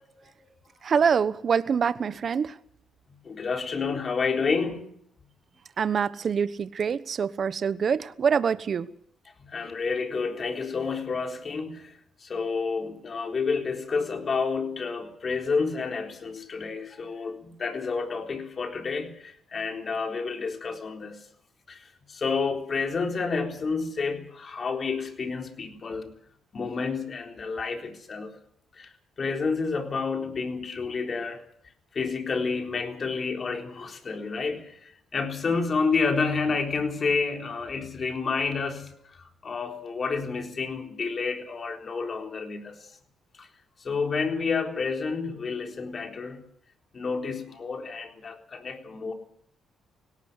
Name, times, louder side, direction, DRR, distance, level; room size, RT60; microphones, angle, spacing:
voice 1, 0.8-2.6 5.8-8.9, right 6 dB, 50° right, 14 dB, 1.1 m, -25 dB
voice 2, 3.2-4.9 9.4-11.9 12.2-21.3 21.7-26.2 26.5-28.3 28.7-28.9 29.2-31.4 31.9-42.8 43.4-43.5 43.8-46.5 46.9-49.1, left 4 dB, 40° left, 3 dB, 3.9 m, -30 dB
19.0 x 18.0 x 8.2 m, 0.69 s
cardioid pair, 90°, 0 cm